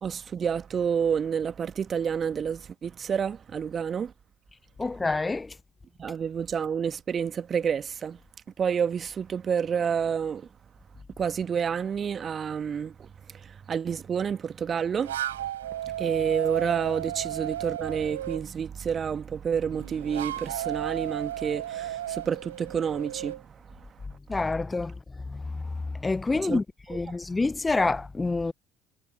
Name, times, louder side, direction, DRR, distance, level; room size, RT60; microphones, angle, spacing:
voice 1, 0.0-4.1 6.0-8.2 8.6-10.5 11.2-15.2 15.8-23.9 26.3-26.6 27.0-27.2, right 7 dB, 40° right, 1.5 m, -29 dB
voice 2, 4.8-5.5 24.3-25.0 25.3-28.5, left 3 dB, 20° left, 0.6 m, -28 dB
sound 1, 15.0-18.4 19.7-23.4, right 12 dB, 75° right, 4.3 m, -34 dB
figure-of-eight pair, 55°, 0 cm